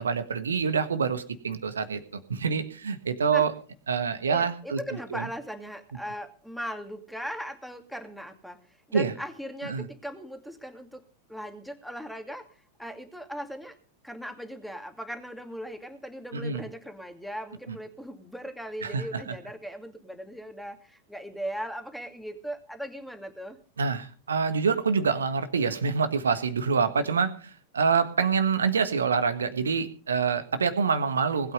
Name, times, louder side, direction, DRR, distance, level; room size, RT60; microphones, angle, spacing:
voice 1, 0.0-3.5 3.9-4.8 5.1-5.2 8.9-9.1 9.6-9.9 16.3-16.6 18.8-19.0 23.8-27.3 27.7-31.5, right 5 dB, 70° right, 11 dB, 1.5 m, -26 dB
voice 2, 4.3-11.0 11.3-13.8 14.0-23.6, equal, ahead, 6 dB, 2.4 m, -38 dB
20.0 x 9.0 x 5.3 m, 0.39 s
figure-of-eight pair, 90°, 0 cm